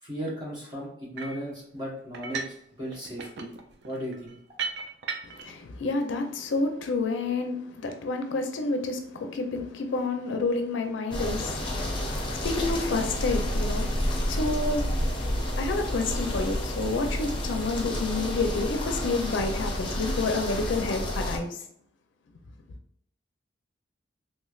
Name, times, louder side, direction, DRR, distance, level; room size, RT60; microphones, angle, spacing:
voice 1, 0.0-2.4 2.8-3.5 3.8-4.4, equal, 25° right, 1.0 m, -36 dB
sound 1, 1.2-1.5 2.1-2.6 2.9-5.5, right 5 dB, 65° right, 0.4 m, -36 dB
voice 2, 5.2-15.0 15.6-21.6, left 3 dB, 85° left, 0.4 m, -29 dB
sound 2, 11.1-21.4, left 1 dB, 30° left, 0.6 m, -30 dB
3.2 x 3.1 x 2.3 m
head